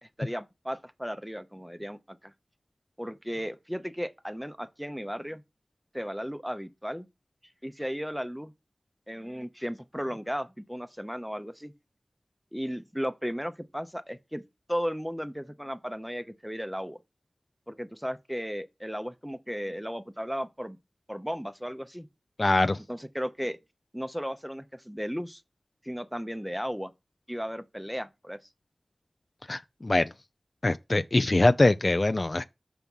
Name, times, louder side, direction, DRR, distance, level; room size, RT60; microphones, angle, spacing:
voice 1, 0.0-2.3 3.0-5.4 5.9-7.1 7.6-8.5 9.1-11.7 12.5-14.4 14.7-17.0 17.7-20.8 21.1-22.1 22.9-23.6 23.9-25.4 25.8-26.9 27.3-28.4, equal, ahead, 0.7 m, -35 dB
voice 2, 22.4-22.8 29.5-30.1 30.6-32.4, left 2 dB, 45° left, 0.3 m, -23 dB
5.9 x 3.5 x 5.4 m
wide cardioid pair, 55°, 0 cm